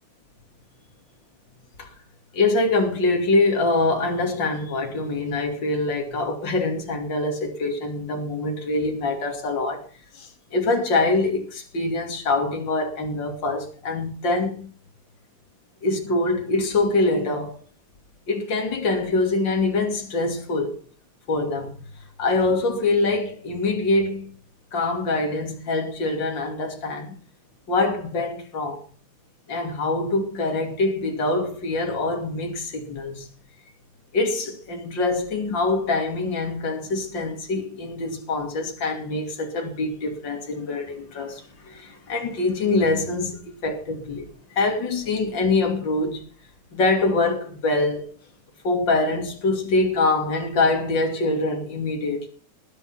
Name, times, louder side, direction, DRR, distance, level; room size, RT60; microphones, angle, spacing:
voice 1, 2.3-9.8 10.1-14.7 15.8-17.6 18.3-20.8 21.3-21.8 22.2-24.4 24.7-27.2 27.7-28.8 29.5-33.3 34.1-46.2 46.7-48.1 48.6-52.3, left 3 dB, 55° left, 3.4 m, -24 dB
20.0 x 8.7 x 5.7 m
omnidirectional pair, 2.4 m